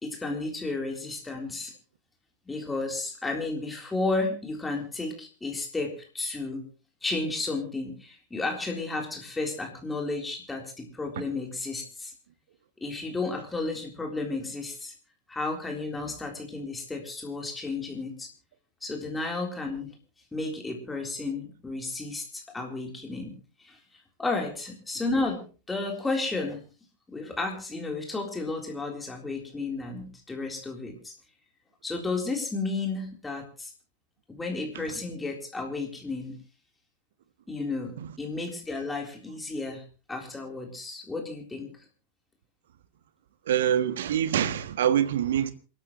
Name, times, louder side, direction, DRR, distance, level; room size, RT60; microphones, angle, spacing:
voice 1, 0.0-1.7 2.5-6.6 7.0-12.1 12.8-14.9 15.3-18.3 18.8-19.9 20.3-23.4 23.6-23.8 24.2-26.6 27.1-31.1 31.8-33.7 34.3-36.4 37.5-39.8 40.1-41.7, left 3 dB, 10° left, 3.7 m, -32 dB
voice 2, 43.5-45.5, right 10 dB, 60° right, 1.3 m, -25 dB
27.5 x 13.5 x 3.1 m
figure-of-eight pair, 90°, 0 cm